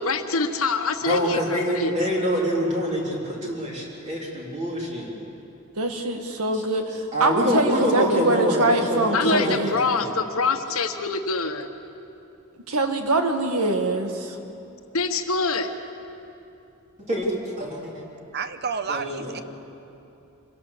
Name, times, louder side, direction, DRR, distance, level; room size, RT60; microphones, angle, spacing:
voice 1, 0.0-1.9 9.1-11.7 14.9-15.7, left 4 dB, 70° left, 7 dB, 1.3 m, -25 dB
voice 2, 1.0-5.1 6.5-6.6 7.1-10.2 17.1-18.0 18.9-19.4, equal, 30° right, -3 dB, 3.6 m, -25 dB
voice 3, 5.8-9.7 12.7-14.4, right 2 dB, 85° right, 5 dB, 1.8 m, -23 dB
voice 4, 18.3-19.4, right 5 dB, 45° right, 11 dB, 0.8 m, -30 dB
25.5 x 17.0 x 6.9 m, 2.8 s
head